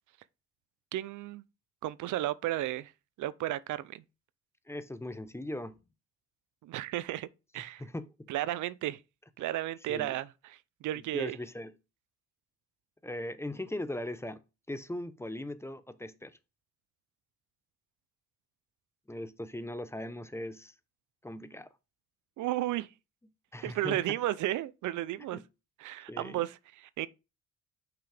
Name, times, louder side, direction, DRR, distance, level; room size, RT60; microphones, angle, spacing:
voice 1, 0.9-1.4 1.8-2.9 3.2-4.0 6.6-7.3 7.5-7.8 8.3-9.0 9.4-11.4 22.4-22.9 23.6-25.4 25.8-27.1, right 14 dB, 75° right, 0.5 m, -33 dB
voice 2, 4.7-5.8 7.8-8.3 9.9-10.1 11.0-11.7 13.0-14.4 14.7-16.4 19.1-20.7 21.2-21.7 23.5-24.0 25.3-25.4 26.1-26.4, left 1 dB, 10° left, 0.7 m, -39 dB
5.9 x 5.5 x 3.3 m
cardioid pair, 90°, 30 cm